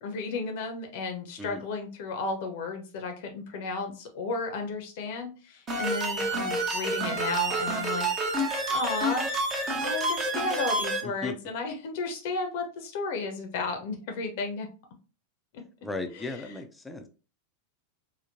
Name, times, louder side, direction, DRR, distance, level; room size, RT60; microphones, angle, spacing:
voice 1, 0.0-8.1 8.7-9.3 9.8-14.7 15.5-15.7 16.2-16.3, left 3 dB, 50° left, 4 dB, 0.6 m, -33 dB
sound 1, 5.7-11.0, right 2 dB, 25° right, 0.7 m, -28 dB
voice 2, 11.0-11.4 15.8-17.1, left 3 dB, 5° left, 5 dB, 0.4 m, -36 dB
3.7 x 2.1 x 2.6 m, 0.35 s
figure-of-eight pair, 90°, 0 cm